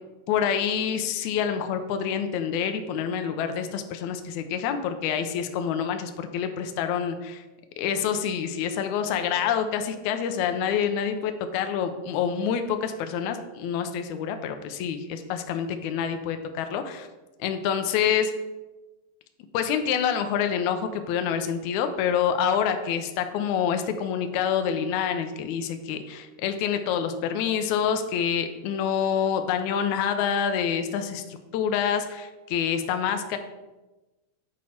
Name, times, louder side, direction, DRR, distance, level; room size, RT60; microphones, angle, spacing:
voice 1, 0.3-7.4 7.8-17.1 17.4-18.3 19.5-33.4, left 8 dB, 80° left, 7 dB, 1.7 m, -27 dB
8.3 x 4.2 x 4.2 m, 1.1 s
omnidirectional pair, 4.0 m